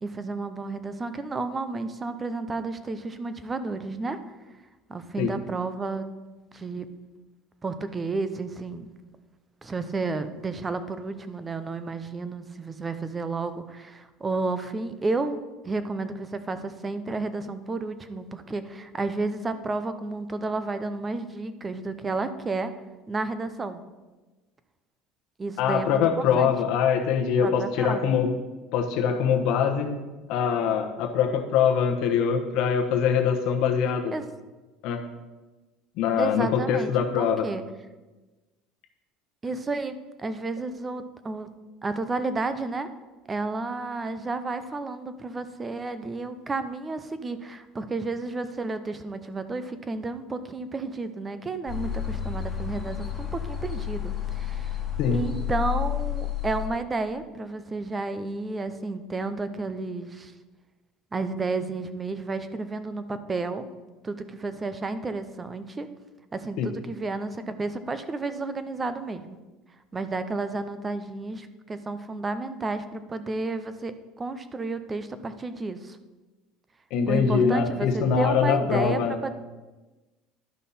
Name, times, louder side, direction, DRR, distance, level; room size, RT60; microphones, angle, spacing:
voice 1, 0.0-4.2 4.9-6.1 6.5-6.9 7.6-8.9 9.6-22.7 23.1-23.8 25.4-26.5 27.4-28.2 34.1-34.3 36.2-37.6 39.4-41.5 41.8-42.9 43.3-54.8 55.1-60.3 61.1-63.7 64.0-65.9 66.3-69.4 69.9-76.0 77.1-79.3, right 3 dB, 15° right, 11 dB, 0.5 m, -32 dB
voice 2, 25.6-28.3 28.7-30.0 30.3-34.1 34.8-35.0 36.0-37.5 55.0-55.2 66.6-66.7 76.9-79.3, left 7 dB, 60° left, 3 dB, 1.1 m, -23 dB
sound 1, 51.7-56.7, left 10 dB, 5° left, 1.5 m, -31 dB
11.5 x 5.4 x 4.2 m, 1.2 s
cardioid pair, 155°, 0 cm